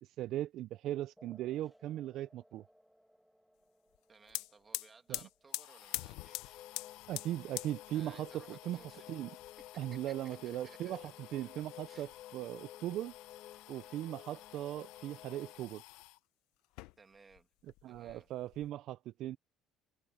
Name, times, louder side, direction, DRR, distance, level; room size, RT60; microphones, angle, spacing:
voice 1, 0.0-2.7 5.1-5.2 7.1-9.3 9.8-13.1 13.7-15.8 17.8-19.4, right 13 dB, 60° right, 0.4 m, -39 dB
sound 1, 1.2-8.2, equal, ahead, 2.0 m, -68 dB
sound 2, 3.9-4.0 4.2-16.2 16.6-17.4 17.7-18.7, left 19 dB, 80° left, 0.7 m, -47 dB
voice 2, 4.1-6.6 7.9-9.1 9.9-11.0 11.4-11.5 11.9-12.1 17.0-17.5 17.9-18.3, right 4 dB, 25° right, 2.6 m, -60 dB
sound 3, 6.2-15.7, left 12 dB, 55° left, 0.3 m, -53 dB
cardioid pair, 110°, 0 cm